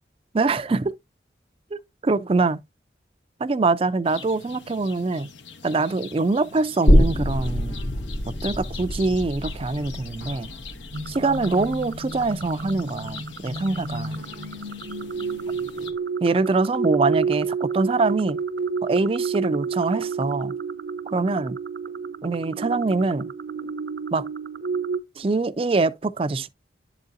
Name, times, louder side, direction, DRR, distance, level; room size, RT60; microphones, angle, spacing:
voice 1, 0.3-0.9 1.7-2.6 3.4-5.3 5.6-7.8 8.4-10.5 11.1-14.2 16.2-18.4 18.8-20.5 21.1-21.6 22.2-23.3 24.1-24.3 25.2-26.5, right 3 dB, 30° right, 0.4 m, -24 dB
sound 1, 4.0-15.9, left 5 dB, 90° left, 1.0 m, -43 dB
sound 2, 6.9-14.2 14.5-14.6, equal, 30° left, 0.5 m, -25 dB
sound 3, 10.9-25.0, right 5 dB, 70° right, 0.6 m, -30 dB
11.5 x 4.0 x 2.5 m
head